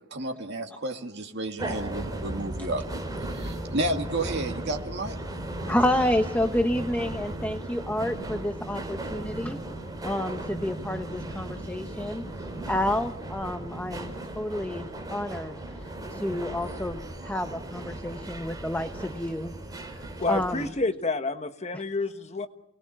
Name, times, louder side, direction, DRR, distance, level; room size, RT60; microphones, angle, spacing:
voice 1, 0.1-5.2, right 1 dB, 60° right, 3 dB, 2.2 m, -32 dB
sound 1, 1.6-20.7, right 1 dB, 20° right, 4.3 m, -36 dB
voice 2, 5.7-9.6 10.0-19.5 20.3-20.7 21.7-21.8, left 1 dB, 10° left, 6 dB, 1.0 m, -29 dB
voice 3, 20.2-22.5, left 3 dB, 35° left, 8 dB, 1.3 m, -29 dB
29.0 x 20.0 x 7.5 m, 0.77 s
head